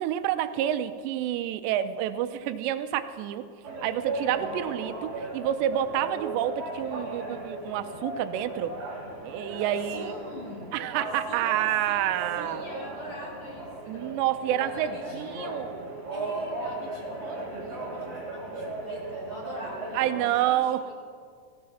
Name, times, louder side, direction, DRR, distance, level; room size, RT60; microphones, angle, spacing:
voice 1, 0.0-3.5 3.8-8.7 9.2-10.1 10.7-12.6 13.9-15.6 19.9-20.8, right 11 dB, 90° right, 11 dB, 2.9 m, -28 dB
sound 1, 3.6-20.3, right 2 dB, 45° right, 4.3 m, -37 dB
voice 2, 9.6-10.9 11.3-14.2 14.6-15.7 16.1-20.9, equal, 45° left, -2 dB, 2.0 m, -43 dB
18.5 x 16.0 x 4.2 m, 2.1 s
omnidirectional pair, 4.9 m